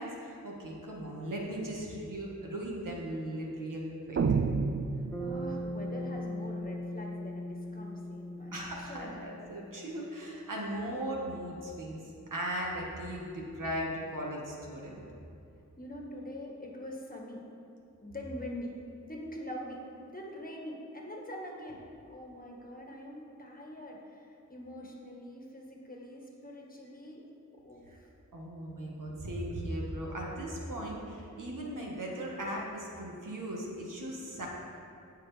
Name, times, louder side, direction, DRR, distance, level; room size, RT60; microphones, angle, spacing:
voice 1, 0.0-4.2 8.5-15.0 28.3-34.5, right 1 dB, 85° right, -2 dB, 1.6 m, -38 dB
sound 1, 4.2-5.8, right 4 dB, 45° right, 0.4 m, -29 dB
voice 2, 5.0-9.1 15.8-17.4 18.0-18.7 19.0-27.2 27.6-28.1, left 1 dB, 30° left, -2 dB, 1.6 m, -44 dB
Bass guitar, 5.1-9.5, equal, 10° left, 1.9 m, -39 dB
17.0 x 5.7 x 3.4 m, 2.6 s
wide cardioid pair, 75°, 31 cm